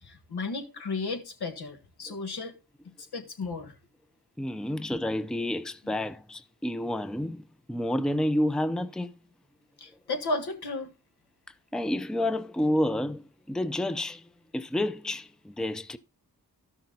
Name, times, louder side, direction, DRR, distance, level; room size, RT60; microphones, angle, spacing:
voice 1, 0.0-2.5 3.1-3.7 4.7-4.8 9.8-10.9, left 3 dB, 80° left, 1.6 m, -34 dB
voice 2, 4.4-9.1 11.7-16.0, left 1 dB, ahead, 0.6 m, -30 dB
12.5 x 6.0 x 3.9 m
cardioid pair, 50°, 38 cm